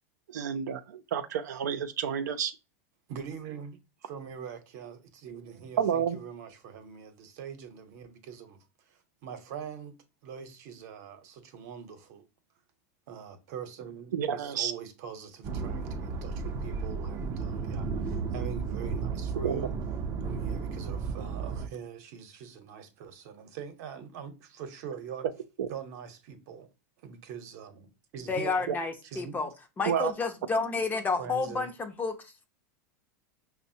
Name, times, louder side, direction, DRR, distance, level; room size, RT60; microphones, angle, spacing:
voice 1, 0.3-2.5 5.8-6.2 14.1-14.7 19.4-19.6 25.6-25.7 28.7-28.8 29.9-30.1, right 8 dB, 85° right, 0.4 m, -29 dB
voice 2, 3.1-3.8 4.0-8.6 8.9-10.0 10.2-12.2 13.1-19.7 20.2-25.3 25.7-26.7 27.0-28.7 29.0-29.5 31.2-31.7, right 7 dB, 65° right, 0.8 m, -43 dB
sound 1, 15.4-21.7, right 5 dB, 35° right, 0.5 m, -33 dB
voice 3, 28.3-29.5 29.8-32.5, left 4 dB, 20° left, 0.6 m, -30 dB
5.3 x 2.1 x 2.6 m
hypercardioid pair, 110°, 9 cm